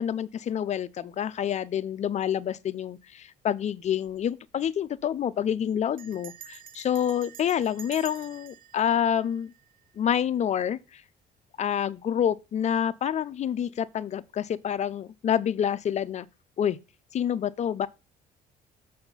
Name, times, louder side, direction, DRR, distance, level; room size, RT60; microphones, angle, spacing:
voice 1, 0.0-9.5 10.0-11.0 11.6-16.3 16.6-16.8 17.1-17.9, left 9 dB, 45° left, 0.5 m, -28 dB
Bell, 3.8-4.2 4.5-4.6 4.8-5.2 6.0-10.1, right 9 dB, 60° right, 0.7 m, -48 dB
6.9 x 4.3 x 5.6 m
cardioid pair, 110°, 17 cm